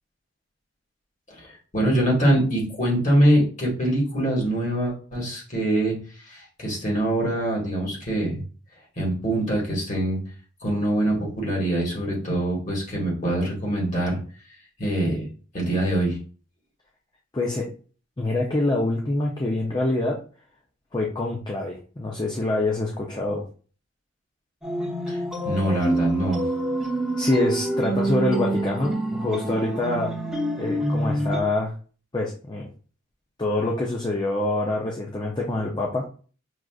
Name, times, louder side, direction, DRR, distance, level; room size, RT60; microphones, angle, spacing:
voice 1, 1.3-8.4 9.0-10.2 10.6-14.2 14.8-15.2 15.5-16.2 25.1-26.5, right 1 dB, 40° left, -3 dB, 1.6 m, -24 dB
voice 2, 17.3-17.6 18.2-20.2 20.9-23.4 27.2-30.1 30.6-31.7 32.1-32.7 33.4-36.0, left 2 dB, 20° left, -2 dB, 0.5 m, -25 dB
sound 1, 24.6-31.4, right 1 dB, 5° right, 1.1 m, -26 dB
6.2 x 2.4 x 2.3 m, 0.40 s
head